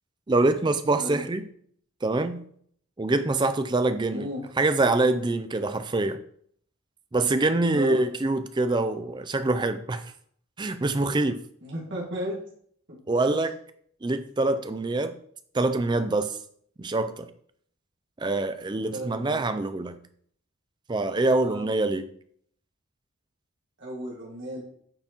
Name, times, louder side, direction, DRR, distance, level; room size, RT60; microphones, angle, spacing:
voice 1, 0.3-1.4 2.0-2.4 3.0-4.3 4.6-6.2 7.1-10.1 10.6-11.4 13.1-13.5 14.0-15.2 15.5-16.4 16.8-17.3 18.2-20.0 20.9-22.1, right 2 dB, 20° right, 10 dB, 0.4 m, -25 dB
voice 2, 4.1-4.4 7.7-8.0 11.6-12.4 12.9-13.4 18.9-19.4 21.4-21.6 23.8-24.6, right 1 dB, 55° right, -5 dB, 2.0 m, -34 dB
8.7 x 4.5 x 3.0 m, 0.62 s
head